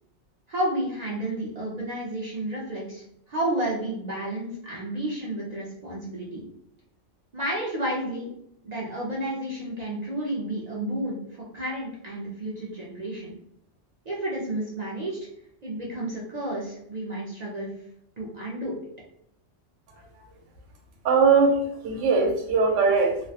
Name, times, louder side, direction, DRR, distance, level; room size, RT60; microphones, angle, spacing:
voice 1, 0.5-6.4 7.3-8.3 8.6-13.4 14.1-15.3 15.6-17.7 18.2-18.7, right 1 dB, 55° right, -4 dB, 0.5 m, -31 dB
voice 2, 21.0-23.2, right 4 dB, 80° right, 1 dB, 0.9 m, -20 dB
2.3 x 2.0 x 2.7 m, 0.73 s
omnidirectional pair, 1.3 m